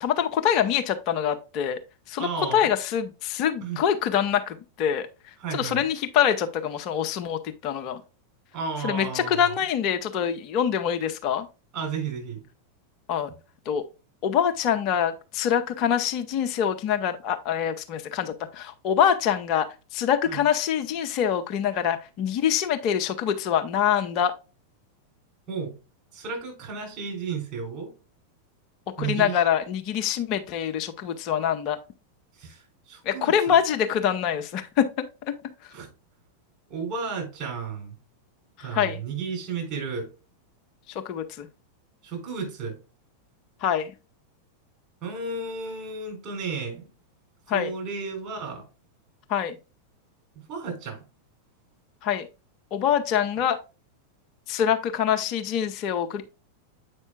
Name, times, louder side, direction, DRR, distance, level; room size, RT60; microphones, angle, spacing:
voice 1, 0.0-1.8 2.1-5.1 5.5-8.0 8.8-11.5 13.1-13.3 13.7-13.8 14.2-19.7 19.9-24.3 29.0-31.8 33.1-35.0 38.7-39.0 40.9-41.5 43.6-43.9 47.5-47.7 49.3-49.6 52.0-52.3 52.7-53.6 54.5-56.2, left 9 dB, 40° left, 0.7 m, -25 dB
voice 2, 2.2-2.7 3.6-3.8 5.4-5.8 8.5-9.5 11.7-12.4 19.0-19.1 20.3-20.4 25.5-25.7 26.1-27.9 29.0-29.4 32.4-33.6 35.7-35.9 36.7-38.0 38.6-40.1 42.0-42.8 45.0-46.9 47.5-48.6 50.3-51.0, right 5 dB, 35° right, 4.1 m, -33 dB
8.1 x 5.3 x 2.4 m
figure-of-eight pair, 90°, 0 cm